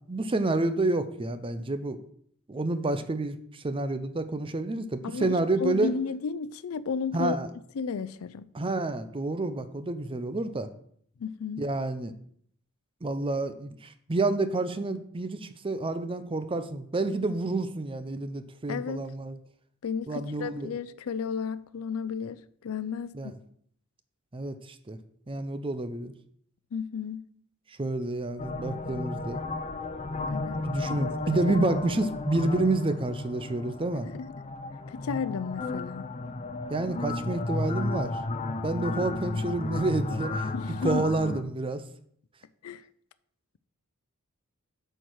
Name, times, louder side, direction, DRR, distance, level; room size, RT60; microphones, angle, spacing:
voice 1, 0.1-2.0 2.5-5.9 7.1-7.5 8.5-10.7 11.6-12.1 13.0-19.4 20.1-20.7 23.1-23.3 24.3-25.0 25.3-26.1 27.8-29.4 30.6-34.1 36.7-38.2 38.6-40.5 40.8-41.8, right 2 dB, 25° right, 0.5 m, -29 dB
voice 2, 5.0-7.4 7.8-8.5 11.2-11.7 18.7-19.1 19.8-23.3 26.7-27.2 30.3-31.1 31.9-32.0 34.1-34.3 34.9-36.0 40.5-41.0 42.6-42.8, left 5 dB, 80° left, 0.4 m, -33 dB
sound 1, 28.4-41.4, left 2 dB, 30° left, 0.6 m, -33 dB
8.0 x 4.6 x 6.3 m
head